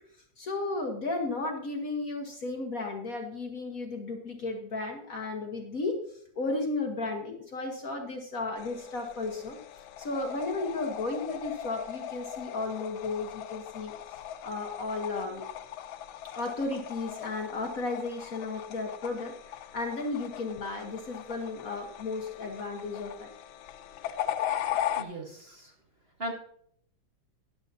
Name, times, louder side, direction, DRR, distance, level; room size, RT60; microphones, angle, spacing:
voice 1, 0.4-6.0 6.3-9.6 10.0-13.9 14.4-15.4 16.3-23.3 25.0-25.1, left 3 dB, 50° left, 3 dB, 1.4 m, -34 dB
sound 1, 8.6-25.0, left 11 dB, 85° left, 1.5 m, -39 dB
voice 2, 24.7-25.7 26.2-26.3, right 1 dB, 30° right, 0 dB, 1.6 m, -39 dB
13.5 x 10.5 x 2.7 m, 0.65 s
omnidirectional pair, 2.2 m